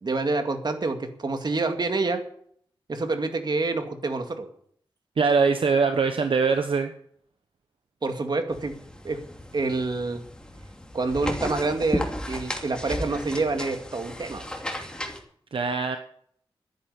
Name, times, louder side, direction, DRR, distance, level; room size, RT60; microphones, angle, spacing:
voice 1, 0.0-2.2 2.9-4.5 8.0-8.7 9.0-9.2 9.5-10.2 10.9-14.4, right 3 dB, 50° right, 6 dB, 2.2 m, -27 dB
voice 2, 5.2-6.9 15.5-16.0, right 5 dB, 70° right, 7 dB, 1.1 m, -22 dB
sound 1, 8.5-15.2, left 1 dB, 10° left, 2.7 m, -34 dB
12.0 x 10.5 x 8.3 m, 0.64 s
wide cardioid pair, 105°, 9 cm